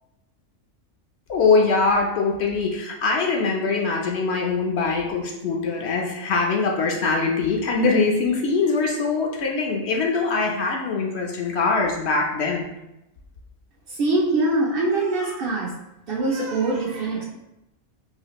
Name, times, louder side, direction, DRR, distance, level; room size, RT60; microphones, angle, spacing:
voice 1, 1.3-12.7, left 4 dB, 65° left, 0 dB, 0.8 m, -22 dB
voice 2, 13.9-15.7 16.1-17.2, right 2 dB, 55° right, -3 dB, 0.7 m, -23 dB
4.1 x 2.4 x 2.9 m, 0.88 s
omnidirectional pair, 1.3 m